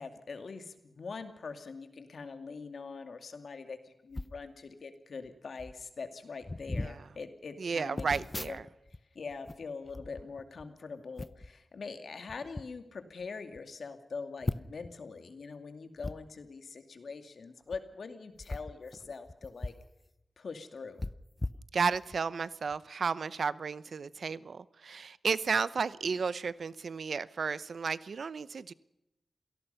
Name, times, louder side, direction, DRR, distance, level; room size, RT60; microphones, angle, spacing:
voice 1, 0.0-8.1 8.5-8.6 9.1-19.7 20.4-21.0, left 4 dB, 85° left, 8 dB, 2.4 m, -43 dB
sound 1, 4.1-4.4 5.2-5.3 5.6-5.8 6.4-7.0 8.0-9.0 9.3-10.7 11.2-11.5 12.3-12.7 13.2-13.3 13.5-13.6 14.4-14.9 16.0-16.1 17.6-17.8 18.4-19.9 20.2-20.3 21.0-22.2 22.7-22.8, left 2 dB, 30° left, 0.7 m, -39 dB
voice 2, 6.7-7.1 7.6-8.7 21.7-28.7, right 5 dB, 85° right, 17 dB, 0.8 m, -33 dB
27.5 x 18.0 x 5.7 m, 0.90 s
wide cardioid pair, 70°, 0 cm